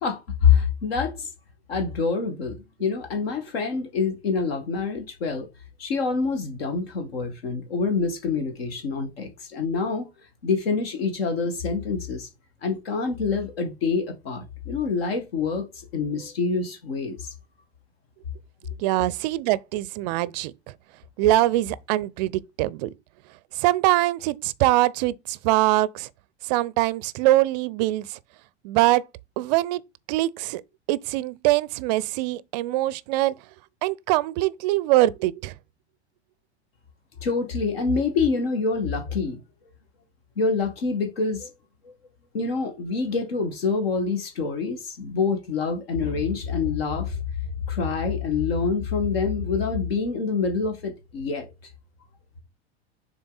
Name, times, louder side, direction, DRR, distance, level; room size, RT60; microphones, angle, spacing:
voice 1, 0.0-1.3 1.7-5.5 5.8-10.1 10.4-12.3 12.6-15.7 15.9-17.3 37.2-39.4 40.4-41.5 42.3-47.2 47.7-51.5, left 5 dB, 60° left, 1.6 m, -26 dB
voice 2, 18.8-20.5 21.2-22.9 23.5-26.1 26.4-28.2 28.6-29.0 29.4-29.8 30.1-30.6 30.9-33.4 33.8-35.5, right 17 dB, 40° right, 0.5 m, -23 dB
6.8 x 3.8 x 3.9 m
figure-of-eight pair, 90°, 33 cm